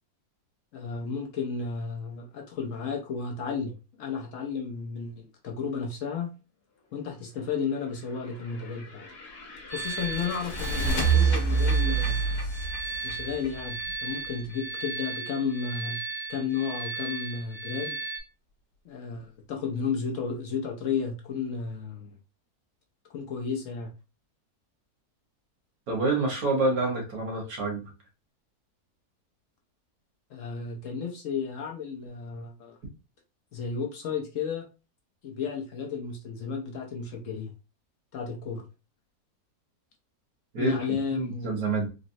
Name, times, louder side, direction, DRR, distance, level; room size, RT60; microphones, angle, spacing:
voice 1, 0.7-6.3 6.9-9.1 9.7-12.2 13.0-16.0 16.3-18.0 18.8-22.2 23.1-23.9 30.3-32.8 33.5-34.7 35.2-37.5 38.1-38.7 40.6-41.6, left 6 dB, 65° left, 0.9 m, -33 dB
sound 1, 8.4-14.2, right 5 dB, 85° left, 1.4 m, -28 dB
sound 2, 9.7-18.2, right 4 dB, 15° left, 0.4 m, -36 dB
voice 2, 25.9-27.8 40.5-41.9, right 3 dB, 70° right, 1.5 m, -27 dB
3.9 x 2.0 x 2.6 m
omnidirectional pair, 1.6 m